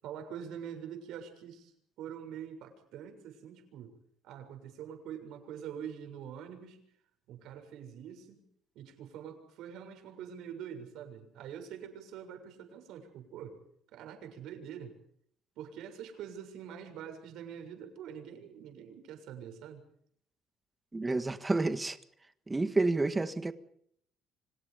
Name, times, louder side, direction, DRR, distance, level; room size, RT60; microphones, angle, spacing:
voice 1, 0.0-1.7 2.0-4.0 4.2-6.8 7.3-8.4 8.8-13.6 13.9-14.9 15.6-19.8, right 8 dB, 75° right, 7.0 m, -45 dB
voice 2, 20.9-22.0 22.5-23.5, right 2 dB, 15° right, 1.7 m, -29 dB
29.5 x 26.0 x 5.3 m
cardioid pair, 155°, 0 cm